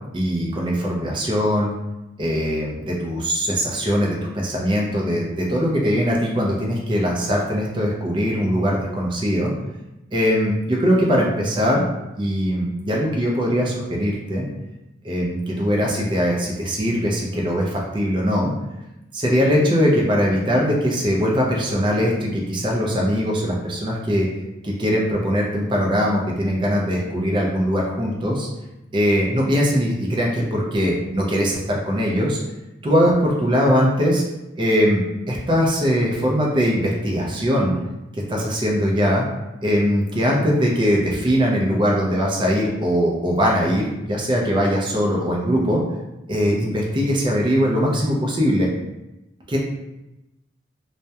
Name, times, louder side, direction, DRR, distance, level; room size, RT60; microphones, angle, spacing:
voice 1, 0.1-1.7 2.2-9.5 10.1-11.8 12.2-14.4 15.0-18.5 19.1-24.3 24.6-28.5 28.9-32.4 32.8-34.2 34.6-37.7 38.1-39.2 39.6-45.8 46.3-48.7 49.5-49.6, equal, 25° right, -2 dB, 0.4 m, -21 dB
2.2 x 2.0 x 2.7 m, 0.95 s
head